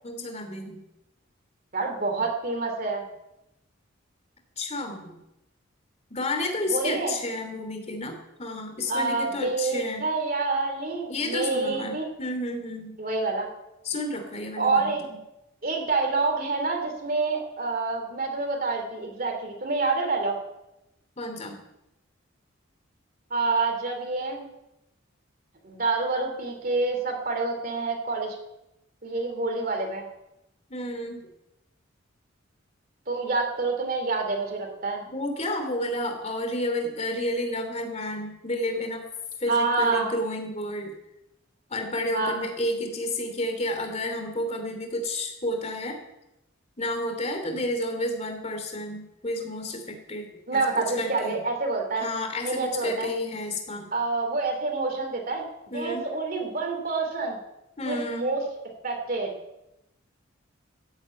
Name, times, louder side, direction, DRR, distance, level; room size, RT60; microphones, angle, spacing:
voice 1, 0.0-0.8 4.6-5.1 6.1-10.1 11.1-12.9 13.8-15.2 21.2-21.6 30.7-31.2 35.1-39.0 39.4-40.9 41.7-46.0 46.8-50.2 50.5-51.4 52.0-53.9 55.7-56.1 57.8-58.3, left 1 dB, 35° left, 5 dB, 3.0 m, -31 dB
voice 2, 1.7-3.0 6.7-7.1 8.9-12.1 13.0-13.5 14.6-15.1 15.6-20.4 23.3-24.4 25.6-28.4 29.0-30.0 33.1-35.0 39.5-40.1 42.1-42.4 50.5-52.1 52.4-53.1 53.9-55.4 55.7-57.4 57.8-58.5 58.8-59.3, right 3 dB, 45° right, 3 dB, 3.0 m, -27 dB
14.5 x 8.8 x 9.2 m, 0.91 s
head